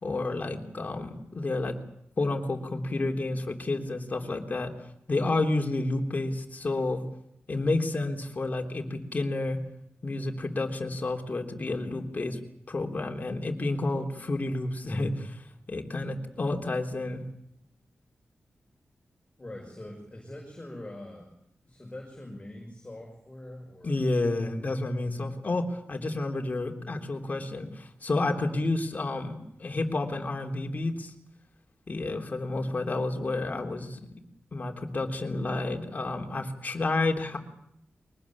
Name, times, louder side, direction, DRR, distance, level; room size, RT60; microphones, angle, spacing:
voice 1, 0.0-1.8 2.2-4.7 5.1-7.0 7.5-9.6 10.0-12.4 12.7-17.2 23.8-31.1 31.9-34.1 34.5-37.4, left 2 dB, 40° left, 2 dB, 3.5 m, -30 dB
voice 2, 19.4-21.3 21.6-24.0, left 1 dB, 20° left, 0 dB, 5.7 m, -43 dB
23.5 x 19.5 x 8.7 m, 0.74 s
wide cardioid pair, 125°, 4 cm